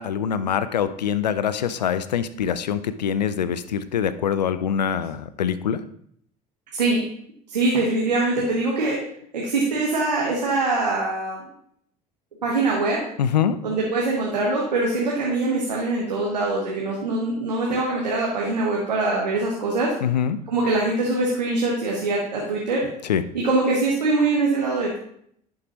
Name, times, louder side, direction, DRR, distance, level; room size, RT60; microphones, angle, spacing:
voice 1, 0.0-5.8 13.2-13.6 20.0-20.4 23.1-23.2, left 8 dB, 85° left, 13 dB, 0.5 m, -24 dB
voice 2, 6.7-7.0 7.5-9.0 9.3-11.5 12.4-13.1 13.6-19.9 20.5-22.9 23.3-25.0, right 2 dB, 90° right, -3 dB, 1.3 m, -23 dB
11.0 x 6.3 x 2.9 m, 0.68 s
hypercardioid pair, 65°, 21 cm